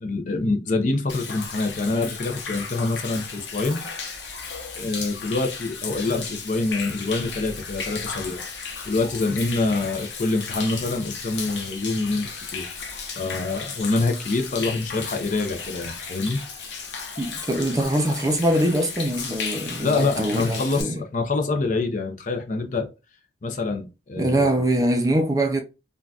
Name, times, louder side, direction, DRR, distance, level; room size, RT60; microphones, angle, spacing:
voice 1, 0.0-3.8 4.8-8.4 8.9-12.7 13.2-16.4 19.8-22.9 23.4-24.5, left 3 dB, 45° left, 0.5 m, -26 dB
Human voice / Rain / Stream, 1.1-20.8, left 5 dB, 80° left, 0.8 m, -35 dB
voice 2, 17.2-21.0 24.2-25.6, right 1 dB, 20° right, 0.5 m, -23 dB
3.8 x 2.2 x 2.3 m
head